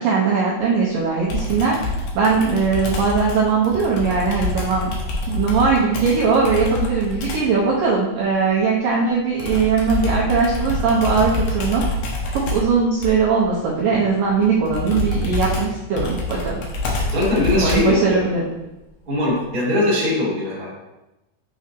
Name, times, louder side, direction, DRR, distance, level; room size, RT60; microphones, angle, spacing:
voice 1, 0.0-1.8 2.2-4.9 5.3-11.8 12.3-16.6 17.5-18.5, right 5 dB, 90° right, -5 dB, 1.9 m, -20 dB
Computer keyboard, 1.3-7.6 9.4-18.0, left 2 dB, 70° left, 2.1 m, -26 dB
voice 2, 17.1-18.2 19.0-20.7, left 2 dB, 30° right, -8 dB, 0.9 m, -20 dB
7.0 x 6.2 x 2.8 m, 0.96 s
omnidirectional pair, 5.2 m